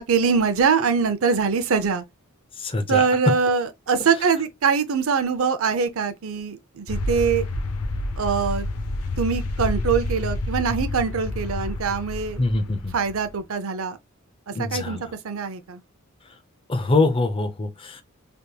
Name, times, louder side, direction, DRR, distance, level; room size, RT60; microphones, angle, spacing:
voice 1, 0.0-2.0 2.9-7.5 8.2-8.7 9.2-12.4 12.9-14.0 14.5-15.0 15.2-15.8, right 5 dB, 65° right, 0.6 m, -23 dB
voice 2, 2.6-3.1 12.4-13.0 14.5-15.0 16.7-18.0, left 2 dB, 25° left, 0.6 m, -24 dB
sound 1, 6.9-13.4, left 2 dB, 85° left, 0.6 m, -29 dB
3.4 x 2.9 x 2.3 m
head